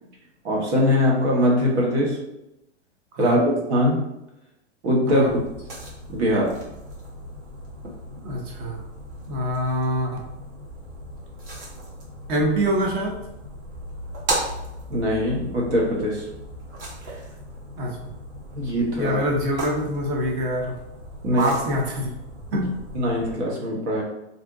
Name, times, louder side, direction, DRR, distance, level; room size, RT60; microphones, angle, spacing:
voice 1, 0.4-2.2 3.2-4.1 4.8-5.2 6.1-6.5 14.9-16.3 18.5-19.2 21.2-21.5 22.5-22.7 22.9-24.0, equal, 70° right, -2 dB, 1.3 m, -22 dB
sound 1, 5.2-23.3, right 1 dB, 55° right, 1.1 m, -37 dB
voice 2, 8.2-8.8 9.3-10.2 12.3-13.2 17.8-18.1 19.0-20.8 21.3-22.1 22.5-22.8, equal, 30° right, 0 dB, 0.6 m, -25 dB
2.6 x 2.1 x 3.5 m, 0.89 s
hypercardioid pair, 140°, 35 cm